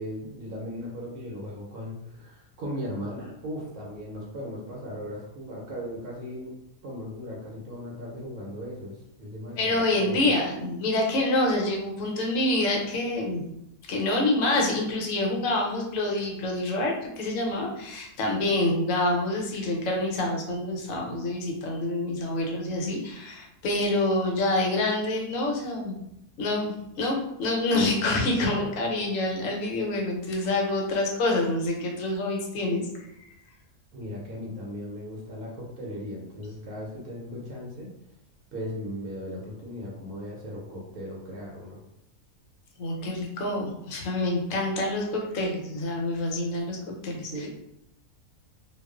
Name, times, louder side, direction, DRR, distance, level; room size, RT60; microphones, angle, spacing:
voice 1, 0.0-6.5 6.8-10.3 28.4-28.7 33.9-37.9 38.5-41.8 47.2-47.5, equal, 80° right, -3 dB, 1.1 m, -37 dB
voice 2, 9.6-13.4 13.9-25.9 26.4-33.1 42.8-47.5, left 2 dB, 70° left, 0 dB, 1.0 m, -27 dB
2.4 x 2.3 x 2.3 m, 0.82 s
omnidirectional pair, 1.5 m